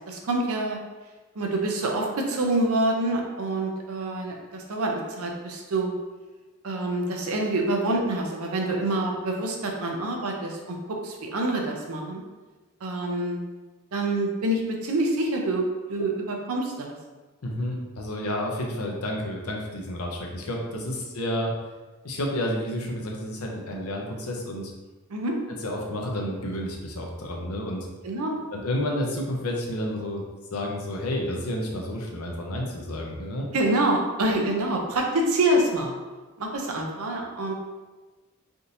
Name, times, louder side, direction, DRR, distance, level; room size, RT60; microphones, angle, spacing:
voice 1, 0.1-0.8 1.4-6.0 6.6-12.2 12.8-13.4 13.9-16.1 16.5-17.0 25.1-25.4 28.0-28.4 33.5-36.0 36.4-37.5, right 1 dB, 80° right, 1 dB, 0.6 m, -26 dB
voice 2, 17.4-21.5 22.0-24.7 25.6-27.9 28.5-30.2 30.5-33.5, left 1 dB, 85° left, 0 dB, 0.7 m, -30 dB
3.5 x 2.6 x 2.8 m, 1.2 s
head